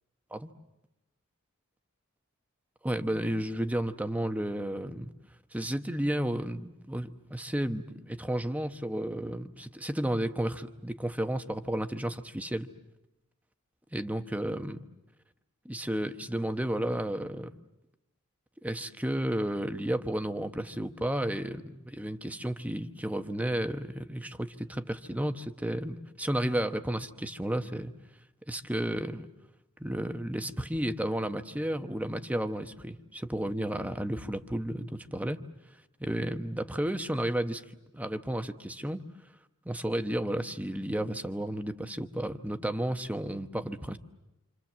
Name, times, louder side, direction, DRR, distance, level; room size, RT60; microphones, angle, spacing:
voice 1, 2.8-5.1 5.5-12.7 13.9-14.8 15.6-17.5 18.6-27.9 28.5-29.3 29.8-35.4 36.0-37.6 37.9-39.0 39.6-44.0, right 1 dB, 5° right, 8 dB, 1.0 m, -32 dB
28.0 x 26.5 x 7.3 m, 0.97 s
head